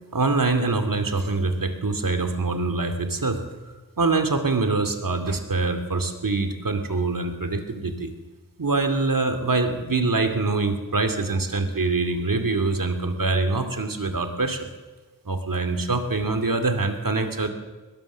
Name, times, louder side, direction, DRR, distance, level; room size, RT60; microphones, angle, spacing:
voice 1, 0.1-3.4 4.0-8.1 8.6-14.7 15.3-17.5, right 3 dB, 65° right, 7 dB, 2.6 m, -24 dB
22.5 x 20.5 x 7.3 m, 1.3 s
wide cardioid pair, 75°, 36 cm